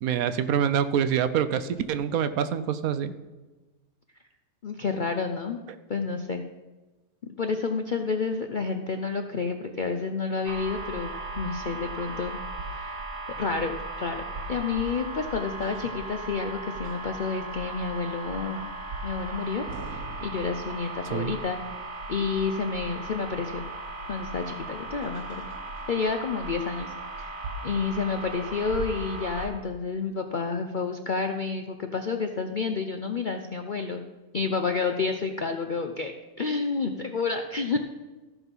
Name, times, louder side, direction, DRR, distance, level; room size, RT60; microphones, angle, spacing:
voice 1, 0.0-3.1 21.1-21.3, right 8 dB, 70° right, 11 dB, 1.0 m, -26 dB
voice 2, 4.6-5.6 5.9-6.4 7.4-13.1 13.4-14.2 14.5-18.7 19.0-21.6 22.1-23.6 24.1-25.4 25.9-34.0 34.3-36.1 36.4-37.8, left 4 dB, 60° left, 5 dB, 0.5 m, -30 dB
sound 1, 10.5-29.5, right 2 dB, 90° right, 1.7 m, -37 dB
14.0 x 5.9 x 5.4 m, 1.2 s
omnidirectional pair, 1.6 m